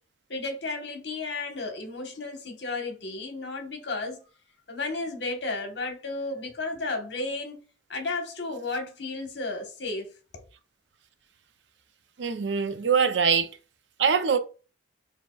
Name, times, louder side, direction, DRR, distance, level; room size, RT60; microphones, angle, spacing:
voice 1, 0.3-4.2 4.7-7.6 7.9-10.1, left 3 dB, 75° left, 1.2 m, -33 dB
voice 2, 12.2-13.5 14.0-14.4, right 6 dB, 80° right, 0.5 m, -23 dB
6.8 x 2.8 x 2.3 m
head